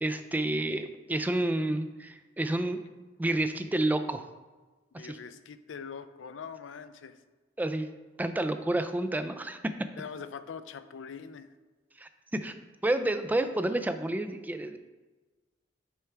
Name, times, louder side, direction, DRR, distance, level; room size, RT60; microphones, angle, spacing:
voice 1, 0.0-2.8 3.2-4.2 5.1-5.2 7.6-7.9 8.2-9.7 12.0-12.5 12.8-14.8, right 1 dB, 10° right, 9 dB, 0.3 m, -29 dB
voice 2, 4.9-7.2 10.0-11.5, left 6 dB, 90° left, 12 dB, 0.4 m, -43 dB
9.1 x 4.5 x 3.4 m, 1.3 s
head